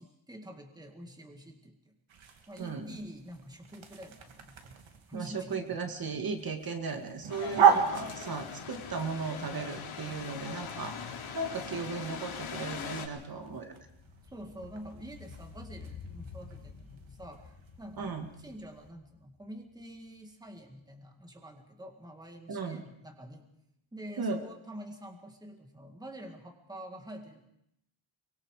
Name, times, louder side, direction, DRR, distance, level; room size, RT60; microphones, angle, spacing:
voice 1, 0.0-1.9 2.5-4.8 5.1-5.8 7.5-8.1 14.2-17.5 17.8-23.5 23.9-27.5, equal, 10° right, 4 dB, 2.0 m, -47 dB
sound 1, 2.1-18.9, right 7 dB, 75° right, 2.4 m, -35 dB
voice 2, 2.6-3.0 5.1-13.9 18.0-18.3 22.5-22.8 24.2-24.4, right 4 dB, 50° right, 5 dB, 2.1 m, -36 dB
sound 2, 7.3-13.1, left 7 dB, 85° left, 3.6 m, -41 dB
sound 3, 12.7-20.2 20.5-20.6, left 5 dB, 50° left, 1.9 m, -52 dB
24.0 x 23.5 x 4.9 m, 0.77 s
wide cardioid pair, 165°, 47 cm